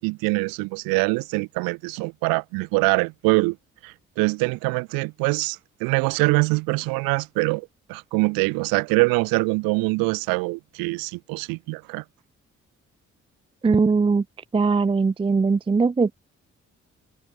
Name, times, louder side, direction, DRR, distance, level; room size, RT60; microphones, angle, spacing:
voice 1, 0.0-3.6 3.8-12.0, right 28 dB, 85° right, 0.9 m, -24 dB
voice 2, 13.6-14.2 14.5-16.1, right 4 dB, 15° right, 0.5 m, -20 dB
hypercardioid pair, 45°, 34 cm